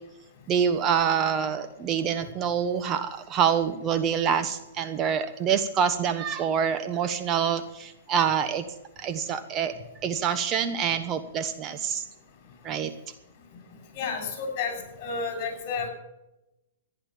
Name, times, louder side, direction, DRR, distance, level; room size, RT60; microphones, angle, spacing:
voice 1, 0.5-8.6 9.0-9.7 10.0-12.0 12.6-12.9, right 7 dB, 25° right, 9 dB, 1.1 m, -26 dB
voice 2, 14.0-15.9, left 5 dB, 40° left, 5 dB, 6.7 m, -31 dB
15.0 x 10.5 x 7.2 m, 0.91 s
hypercardioid pair, 140°, 0 cm